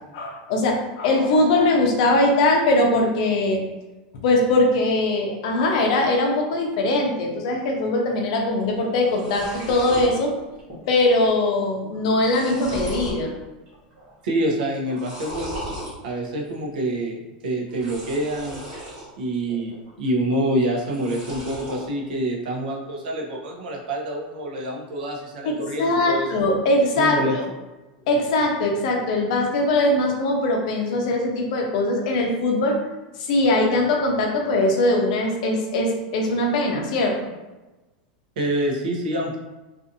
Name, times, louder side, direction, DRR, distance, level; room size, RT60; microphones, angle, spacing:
voice 1, 0.1-3.6 4.2-10.3 10.9-13.3 25.4-27.2 28.1-32.8 33.2-37.3, left 2 dB, 50° left, 0 dB, 0.6 m, -21 dB
sound 1, 8.6-8.7 8.9-10.1 10.6-11.0 11.3-11.4 11.9-13.2 13.7-14.1 14.9-15.9 17.7-19.1 19.5-20.1 20.8-21.9, equal, 25° right, 1.0 m, -36 dB
voice 2, 14.2-15.5 16.0-18.6 19.2-26.3 27.0-27.5 38.4-39.4, right 1 dB, 70° right, 0 dB, 0.6 m, -26 dB
2.5 x 2.4 x 2.6 m, 1.1 s
supercardioid pair, 175°, 5 cm